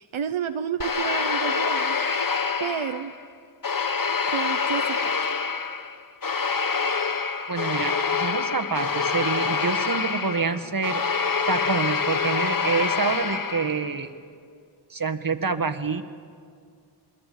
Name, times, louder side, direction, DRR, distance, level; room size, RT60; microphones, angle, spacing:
voice 1, 0.0-2.3 2.6-3.1 4.3-5.1, right 8 dB, 80° right, 9 dB, 0.9 m, -31 dB
sound 1, 0.8-3.2 3.6-14.0, left 5 dB, 45° left, 1.3 m, -26 dB
voice 2, 7.5-11.0 11.5-14.1 14.9-16.0, right 4 dB, 45° right, 7 dB, 1.7 m, -27 dB
28.0 x 21.5 x 8.6 m, 2.3 s
cardioid pair, 45°, 48 cm